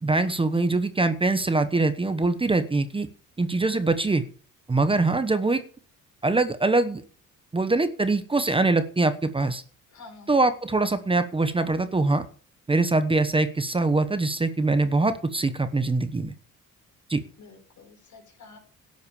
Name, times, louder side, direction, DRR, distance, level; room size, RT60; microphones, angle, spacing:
voice 1, 0.0-3.1 3.4-4.2 4.7-5.6 6.2-7.0 7.5-9.6 10.3-12.2 12.7-16.3 17.1-17.2, right 3 dB, 15° right, 10 dB, 1.0 m, -23 dB
voice 2, 9.9-10.3 17.4-18.6, left 3 dB, 65° left, 4 dB, 4.9 m, -48 dB
12.5 x 7.9 x 7.0 m, 0.41 s
cardioid pair, 125°, 32 cm